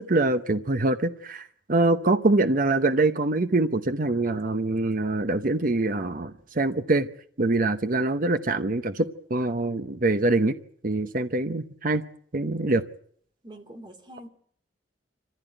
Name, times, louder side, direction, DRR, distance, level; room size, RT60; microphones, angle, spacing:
voice 1, 0.0-7.1 7.4-10.5 10.8-12.0 12.3-12.8, right 2 dB, 50° right, 9 dB, 0.9 m, -24 dB
voice 2, 13.4-14.3, right 1 dB, 25° right, 5 dB, 2.8 m, -45 dB
25.0 x 15.0 x 9.1 m, 0.63 s
head